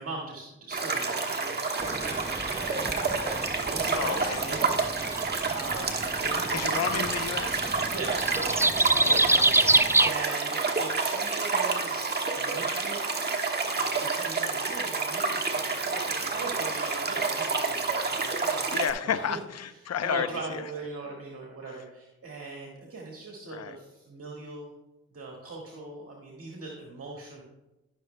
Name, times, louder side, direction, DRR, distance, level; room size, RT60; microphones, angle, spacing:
voice 1, 0.0-3.1 3.5-4.7 5.5-7.0 7.9-8.6 8.9-12.1 12.4-13.0 13.7-18.7 19.0-19.4 20.0-24.7 25.1-27.4, right 3 dB, 50° right, -1 dB, 1.7 m, -40 dB
sound 1, 0.7-18.9, right 4 dB, 35° right, 1.3 m, -29 dB
sound 2, 1.8-10.1, right 2 dB, 10° right, 0.4 m, -27 dB
voice 2, 3.9-4.4 6.5-7.6 8.9-9.8 18.7-20.6 23.5-23.8, left 8 dB, 55° left, 12 dB, 0.7 m, -32 dB
16.0 x 6.3 x 2.2 m, 1.0 s
supercardioid pair, 50°, 30 cm